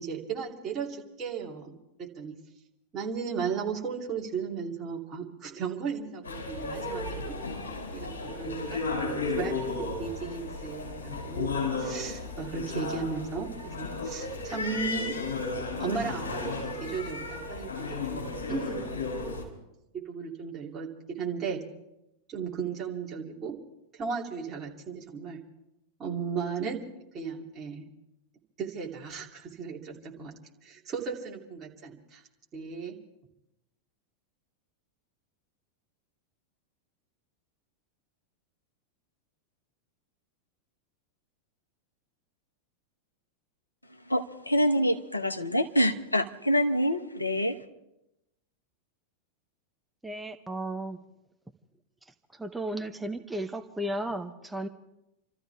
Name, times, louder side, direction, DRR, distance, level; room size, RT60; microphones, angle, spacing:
voice 1, 0.0-2.4 2.9-7.4 7.9-9.5 9.8-15.1 15.8-18.8 20.0-21.6 22.3-23.6 23.9-25.4 26.0-26.8 27.1-27.9 28.6-30.3 30.6-32.2 32.5-32.9, right 6 dB, 25° right, 2.9 m, -35 dB
sound 1, 6.2-19.4, left 3 dB, 70° left, 4.4 m, -34 dB
voice 2, 44.1-47.6, equal, 85° left, 1.0 m, -26 dB
voice 3, 50.0-51.0 52.3-54.7, right 1 dB, 5° right, 0.8 m, -34 dB
29.0 x 13.5 x 3.5 m
figure-of-eight pair, 90°, 0 cm